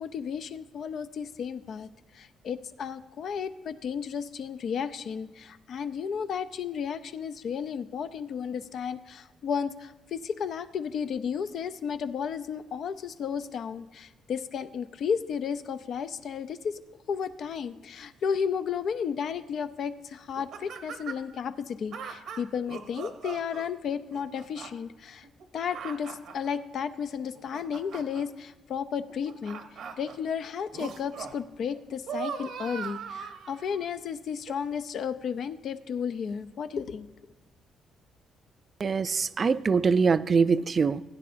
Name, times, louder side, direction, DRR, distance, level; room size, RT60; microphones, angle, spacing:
voice 1, 0.0-1.9 2.1-16.8 17.1-25.3 25.5-29.6 30.0-37.1, left 7 dB, 65° left, 11 dB, 0.5 m, -33 dB
sound 1, 20.3-21.3 21.9-23.7 24.1-24.7 25.2-26.5 27.2-28.2 29.1-30.2 30.7-31.4 31.7-33.8 34.5-34.6, right 6 dB, 75° right, 0.9 m, -39 dB
voice 2, 38.8-41.0, right 5 dB, 40° right, 15 dB, 0.3 m, -23 dB
16.5 x 9.4 x 2.6 m, 1.1 s
cardioid pair, 90°, 0 cm